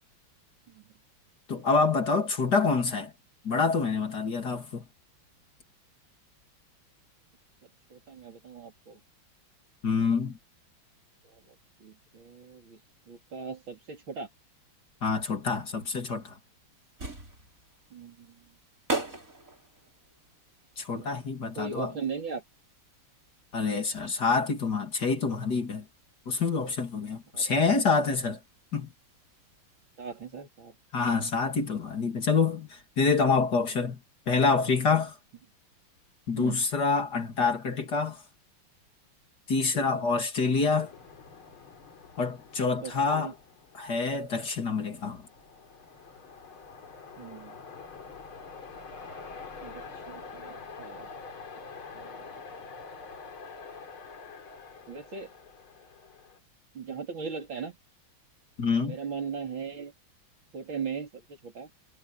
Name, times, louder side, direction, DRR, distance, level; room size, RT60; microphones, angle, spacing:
voice 1, 1.5-3.1 3.4-4.9 9.8-10.4 15.0-16.3 20.8-21.9 23.5-25.8 26.3-28.4 28.7-28.9 30.9-34.0 34.3-35.2 36.3-38.2 39.5-40.9 42.2-43.3 43.7-45.2 58.6-59.0, left 4 dB, 50° left, 3.2 m, -27 dB
voice 2, 7.6-9.0 11.2-12.8 13.1-14.3 17.9-18.5 20.9-21.2 21.6-22.4 27.3-27.8 30.0-30.8 33.6-33.7 36.4-36.6 39.7-40.0 42.8-43.4 47.2-47.6 49.6-51.1 51.9-52.4 54.9-55.3 56.7-57.8 58.8-59.9 60.5-61.7, right 5 dB, 70° right, 4.3 m, -39 dB
sound 1, 16.7-30.4, right 2 dB, 40° right, 6.2 m, -43 dB
sound 2, 40.6-56.4, left 4 dB, 85° left, 3.9 m, -46 dB
omnidirectional pair, 2.3 m